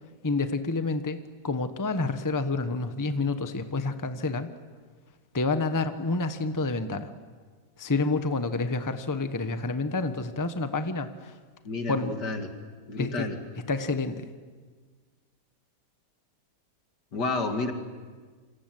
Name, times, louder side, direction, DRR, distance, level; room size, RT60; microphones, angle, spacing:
voice 1, 0.2-1.2 1.4-4.5 5.3-7.1 7.8-11.4 11.9-12.1 13.0-13.3 13.7-14.3, left 3 dB, 15° left, 9 dB, 1.0 m, -28 dB
voice 2, 11.6-12.5 12.9-13.4 17.1-17.7, left 3 dB, 75° left, 5 dB, 2.8 m, -30 dB
28.5 x 25.5 x 7.8 m, 1.5 s
omnidirectional pair, 1.8 m